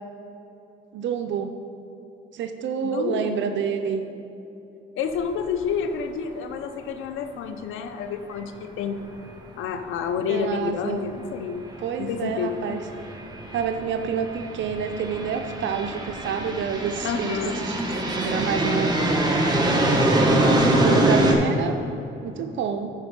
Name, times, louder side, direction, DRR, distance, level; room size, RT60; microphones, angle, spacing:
voice 1, 0.9-1.5 2.3-4.0 10.3-11.1 11.8-12.8 13.5-19.1 20.3-21.7 22.2-22.9, right 7 dB, 70° right, 6 dB, 0.6 m, -28 dB
voice 2, 2.8-3.5 5.0-9.1 9.6-11.6 12.0-12.5 17.0-17.6 20.9-21.3, left 6 dB, 85° left, 8 dB, 0.7 m, -29 dB
sound 1, 5.2-5.3 5.6-5.7 9.8-9.9 10.9-11.1 11.8-21.3, right 1 dB, 20° right, 1.4 m, -24 dB
11.5 x 4.6 x 5.2 m, 2.9 s
cardioid pair, 90°, 20 cm